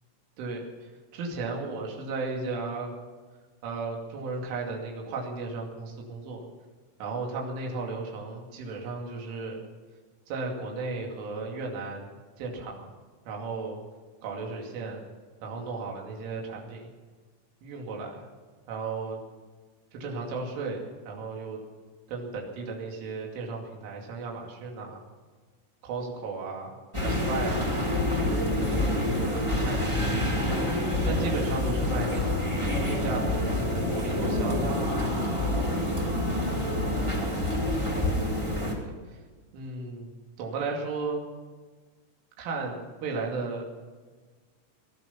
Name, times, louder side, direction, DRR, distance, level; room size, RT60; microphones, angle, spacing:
voice 1, 1.1-2.9 3.6-6.5 7.0-9.6 10.3-12.1 12.4-12.9 13.3-13.8 14.2-15.1 15.4-16.9 17.6-18.3 18.7-19.2 19.9-21.6 22.1-25.0 25.8-26.7 27.0-30.3 30.7-32.4 32.9-35.3 38.8-39.2 39.5-40.1 40.4-41.2 42.4-43.6, right 3 dB, 70° right, -1 dB, 4.9 m, -35 dB
sound 1, 26.9-38.7, left 1 dB, 30° right, 0.5 m, -27 dB
20.0 x 12.0 x 5.8 m, 1.4 s
omnidirectional pair, 6.0 m